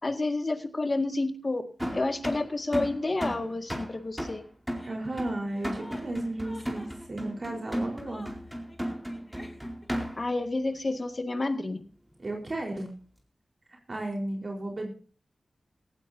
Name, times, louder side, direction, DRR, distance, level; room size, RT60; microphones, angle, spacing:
voice 1, 0.0-1.6 1.9-4.4 10.2-11.8, left 2 dB, 45° left, 7 dB, 2.0 m, -29 dB
sound 1, 1.8-10.4, equal, 10° right, 4.2 m, -35 dB
Chuckle chortle, 4.7-10.0, left 1 dB, 25° left, 6.0 m, -50 dB
voice 2, 4.8-8.3 12.2-12.9 13.9-14.9, right 2 dB, 50° right, 1 dB, 4.3 m, -34 dB
18.0 x 15.5 x 2.8 m, 0.39 s
wide cardioid pair, 70°, 0 cm